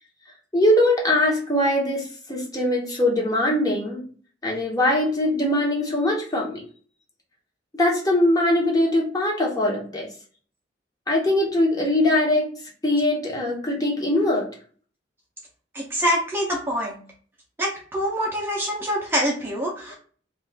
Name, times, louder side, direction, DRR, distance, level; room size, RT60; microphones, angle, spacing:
voice 1, 0.5-4.0 4.4-6.6 7.8-10.1 11.1-12.5 12.8-14.5 19.9-20.0, left 1 dB, 20° left, -2 dB, 0.8 m, -21 dB
voice 2, 15.7-17.0 17.6-19.9, equal, 10° right, -2 dB, 0.5 m, -25 dB
2.4 x 2.3 x 3.3 m, 0.42 s
head